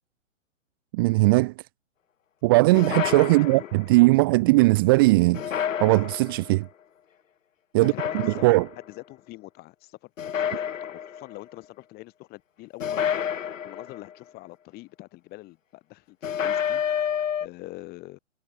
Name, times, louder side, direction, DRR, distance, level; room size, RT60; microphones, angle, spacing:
voice 1, 0.9-1.5 2.4-5.4 5.8-6.7 7.7-7.9 8.2-8.7, right 23 dB, 20° right, 0.6 m, -19 dB
sound 1, 2.7-4.0 5.3-6.5 7.8-8.8 10.2-11.3 12.8-14.1 16.2-17.5, left 8 dB, 80° left, 0.9 m, -29 dB
voice 2, 3.2-4.0 7.8-8.6 8.9-13.1 13.6-17.1 17.4-18.2, left 20 dB, 25° left, 7.5 m, -44 dB
hypercardioid pair, 140°, 39 cm